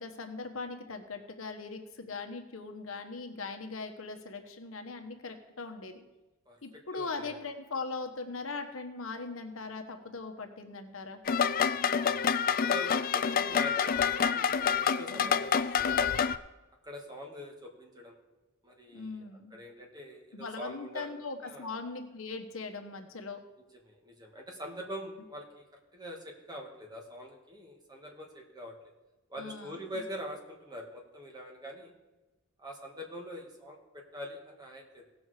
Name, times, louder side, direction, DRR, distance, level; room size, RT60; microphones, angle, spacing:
voice 1, 0.0-6.0 6.6-11.2 15.1-15.4 18.9-19.6 20.3-23.4 29.4-29.7, left 4 dB, 75° left, 6 dB, 1.1 m, -40 dB
voice 2, 6.5-7.4 12.1-16.2 16.8-18.2 18.6-19.2 19.5-21.1 21.4-21.7 23.8-25.7 25.9-28.8 29.3-31.9 32.6-35.1, equal, 20° right, 1 dB, 1.7 m, -44 dB
sound 1, 11.3-16.4, left 7 dB, 45° left, 0.4 m, -27 dB
17.0 x 6.2 x 4.8 m, 1.1 s
head